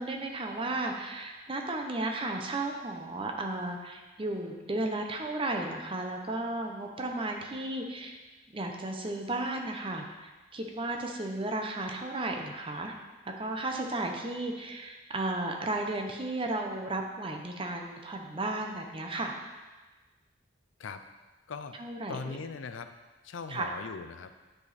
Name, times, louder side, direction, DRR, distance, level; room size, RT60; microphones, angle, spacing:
voice 1, 0.0-8.2 8.5-12.9 13.4-19.4 21.8-22.4 23.5-23.7, right 2 dB, 25° right, 3 dB, 0.8 m, -34 dB
voice 2, 22.1-22.9 23.2-24.3, left 4 dB, 80° left, 9 dB, 0.5 m, -39 dB
9.6 x 5.0 x 4.2 m, 1.2 s
head